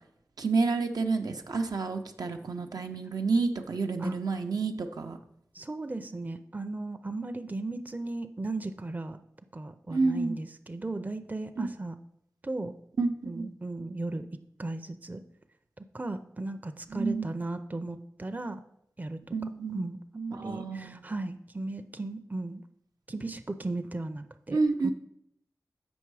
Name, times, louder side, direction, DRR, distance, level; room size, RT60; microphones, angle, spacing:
voice 1, 0.4-5.2 9.9-10.4 11.6-11.7 13.0-13.5 16.9-17.3 19.3-19.9 20.3-21.0 24.5-24.9, right 4 dB, 75° right, 4 dB, 0.6 m, -29 dB
voice 2, 5.5-9.2 9.5-11.9 12.4-12.7 13.2-14.3 14.6-15.2 15.9-18.6 19.0-19.2 19.7-22.6 23.1-24.9, right 2 dB, 25° right, 8 dB, 0.5 m, -36 dB
7.1 x 5.4 x 4.7 m, 0.75 s
cardioid pair, 45°, 7 cm